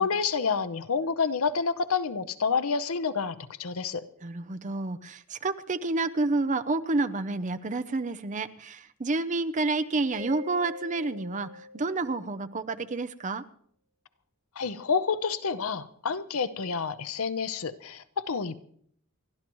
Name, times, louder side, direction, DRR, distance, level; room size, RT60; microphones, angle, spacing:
voice 1, 0.0-4.0 14.6-18.6, left 5 dB, 85° left, 12 dB, 0.8 m, -29 dB
voice 2, 4.2-13.4, right 3 dB, 35° right, 10 dB, 0.7 m, -29 dB
Mallet percussion, 10.1-12.7, left 3 dB, 85° right, 3.0 m, -44 dB
28.5 x 12.0 x 3.1 m, 0.64 s
head